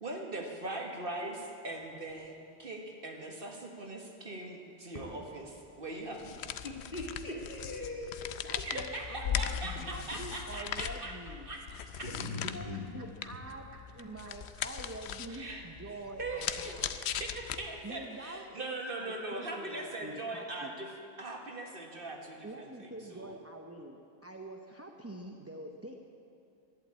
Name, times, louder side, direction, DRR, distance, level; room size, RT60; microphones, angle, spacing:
voice 1, 0.0-6.4 8.6-11.1 11.5-12.1 15.3-15.6 16.2-20.9 21.2-23.4, right 2 dB, 55° right, 1 dB, 1.7 m, -41 dB
Crackle, 0.9-8.7, equal, 35° left, 3.6 m, -58 dB
sound 1, 6.1-18.0, left 9 dB, 90° left, 0.9 m, -39 dB
voice 2, 6.6-8.3 9.9-10.0 12.2-12.8, left 2 dB, 55° left, -2 dB, 2.4 m, -40 dB
voice 3, 8.4-11.5 12.1-17.0 17.8-20.7 22.4-25.9, right 1 dB, 15° right, 2 dB, 0.7 m, -46 dB
11.5 x 11.0 x 8.5 m, 2.6 s
omnidirectional pair, 1.1 m